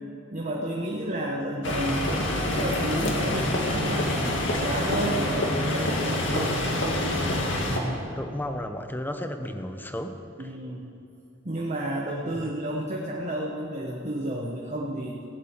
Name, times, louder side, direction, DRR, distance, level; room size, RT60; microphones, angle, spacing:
voice 1, 0.3-4.2 4.6-6.5 10.4-10.9 11.4-15.2, right 1 dB, 35° right, -1 dB, 1.3 m, -31 dB
sound 1, 1.6-7.8, left 1 dB, 65° left, 2.1 m, -26 dB
voice 2, 7.7-10.5 12.3-12.5, left 1 dB, 10° left, 6 dB, 0.9 m, -34 dB
17.0 x 7.5 x 8.8 m, 2.8 s
head